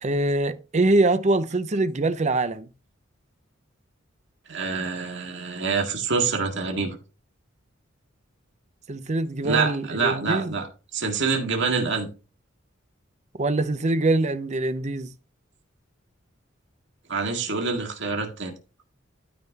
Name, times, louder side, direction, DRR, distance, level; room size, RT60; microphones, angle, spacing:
voice 1, 0.0-2.7 8.9-10.5 13.4-15.1, right 2 dB, 35° right, 0.7 m, -23 dB
voice 2, 4.5-7.0 9.4-10.7 10.9-12.1 17.1-18.5, right 4 dB, 65° right, 2.0 m, -26 dB
12.5 x 5.7 x 2.9 m
head